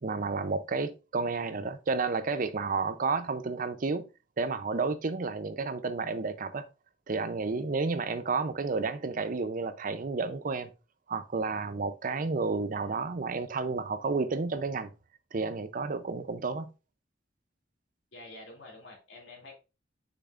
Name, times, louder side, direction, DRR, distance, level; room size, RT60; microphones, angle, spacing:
voice 1, 0.0-4.1 4.4-6.7 7.1-10.7 11.1-14.9 15.3-16.7, right 4 dB, 45° right, 0.5 m, -31 dB
voice 2, 18.1-19.5, left 2 dB, 70° left, 2.6 m, -48 dB
6.8 x 5.8 x 2.5 m
head